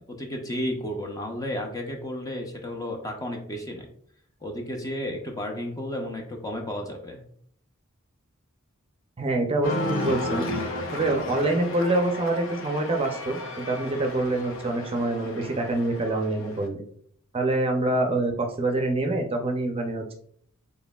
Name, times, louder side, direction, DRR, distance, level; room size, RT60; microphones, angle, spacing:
voice 1, 0.1-3.9 4.4-7.2, left 1 dB, 15° left, 3 dB, 0.5 m, -32 dB
voice 2, 9.2-10.4 10.9-16.8 17.3-20.1, right 2 dB, 25° right, 3 dB, 0.5 m, -26 dB
Cheering, 9.6-16.7, left 2 dB, 65° left, 0.6 m, -34 dB
4.1 x 3.5 x 2.3 m, 0.62 s
head